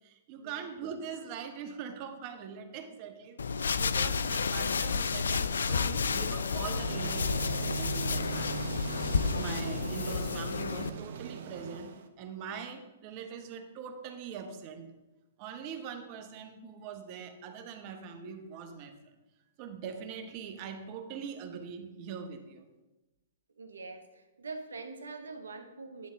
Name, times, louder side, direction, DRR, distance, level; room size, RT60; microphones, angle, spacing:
voice 1, 0.0-8.6 9.3-14.9 15.4-19.1 19.6-22.7, right 6 dB, 40° right, 6 dB, 1.1 m, -42 dB
sound 1, 3.4-10.9, left 5 dB, 80° left, 0.4 m, -31 dB
sound 2, 6.7-12.1, right 6 dB, 65° right, 0.8 m, -39 dB
voice 2, 23.6-26.1, right 3 dB, 85° right, 7 dB, 1.1 m, -44 dB
10.5 x 3.6 x 6.3 m, 1.0 s
hypercardioid pair, 120°, 0 cm